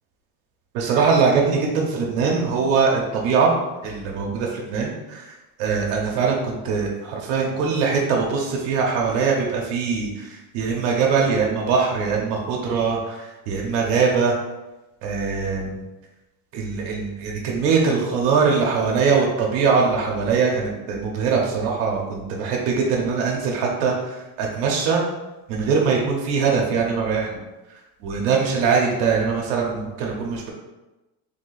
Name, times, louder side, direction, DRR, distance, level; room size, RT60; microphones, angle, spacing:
voice 1, 0.7-3.5 3.8-14.3 15.0-15.8 16.5-25.0 25.5-27.4 28.0-30.5, right 5 dB, 75° right, -1 dB, 0.9 m, -22 dB
3.6 x 2.7 x 3.9 m, 1.0 s
cardioid pair, 170°, 48 cm